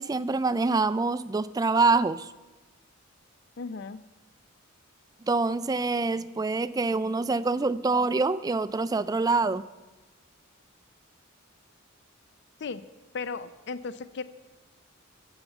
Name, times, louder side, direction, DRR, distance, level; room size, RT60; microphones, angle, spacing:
voice 1, 0.0-2.3 5.2-9.7, right 3 dB, 15° right, 15 dB, 0.3 m, -25 dB
voice 2, 3.6-4.0 12.6-12.8 13.1-14.2, left 4 dB, 55° left, 13 dB, 0.5 m, -35 dB
13.5 x 7.2 x 8.1 m, 1.2 s
head